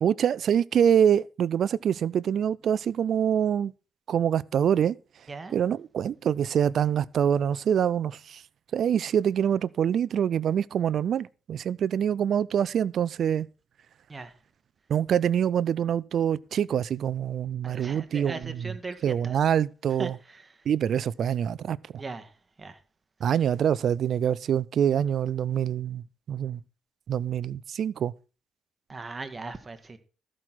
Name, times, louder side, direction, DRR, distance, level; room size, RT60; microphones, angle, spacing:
voice 1, 0.0-3.7 4.1-5.0 5.5-8.4 8.7-13.5 14.9-18.3 19.0-20.1 20.7-22.0 23.2-26.6 27.1-28.1, right 9 dB, 60° right, 0.5 m, -25 dB
voice 2, 17.6-19.4 20.0-20.7 22.0-22.8 23.2-23.3 28.9-30.0, right 3 dB, 25° right, 1.8 m, -39 dB
14.0 x 6.2 x 5.9 m
cardioid pair, 90°, 0 cm